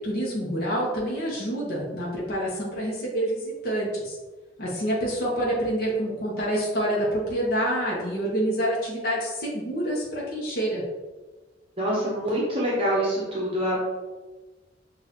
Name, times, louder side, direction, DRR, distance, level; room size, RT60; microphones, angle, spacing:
voice 1, 0.0-4.2 4.6-10.8, right 1 dB, 55° left, -4 dB, 1.0 m, -27 dB
voice 2, 11.8-13.8, equal, 30° right, -5 dB, 0.8 m, -25 dB
6.2 x 2.6 x 2.9 m, 1.2 s
head